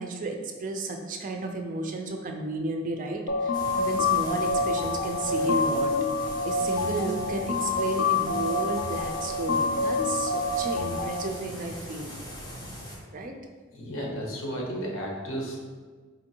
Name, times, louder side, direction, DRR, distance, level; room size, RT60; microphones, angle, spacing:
voice 1, 0.0-5.9 6.4-12.1 13.1-13.4, right 2 dB, 40° right, 4 dB, 0.4 m, -33 dB
sound 1, 3.3-11.3, left 3 dB, 65° left, 0.4 m, -27 dB
sound 2, 3.5-13.0, equal, 20° left, 0.6 m, -41 dB
voice 2, 13.7-15.7, equal, 85° left, -2 dB, 0.8 m, -33 dB
4.4 x 2.6 x 2.7 m, 1.4 s
head